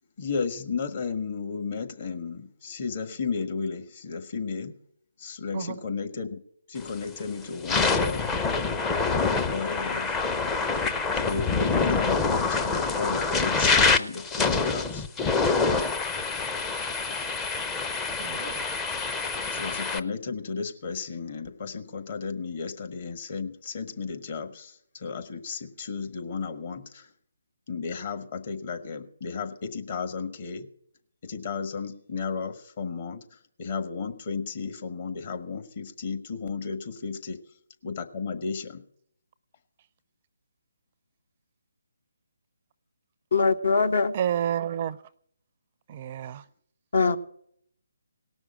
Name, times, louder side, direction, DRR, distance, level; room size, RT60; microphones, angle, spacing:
voice 1, 0.2-4.8 5.2-6.4 6.7-8.3 9.1-10.1 11.1-15.1 19.5-27.1 27.7-30.7 31.2-37.4 37.8-38.8, left 5 dB, 40° left, 6 dB, 1.5 m, -33 dB
sound 1, 6.8-7.1 7.5-20.0, left 4 dB, 15° left, 0.6 m, -26 dB
voice 2, 18.2-18.6 44.1-45.0 45.9-46.4, right 9 dB, 35° right, 15 dB, 0.5 m, -30 dB
voice 3, 43.3-44.1 46.9-47.2, left 4 dB, 60° left, 9 dB, 1.0 m, -22 dB
18.0 x 6.2 x 8.7 m, 0.67 s
figure-of-eight pair, 150°, 0 cm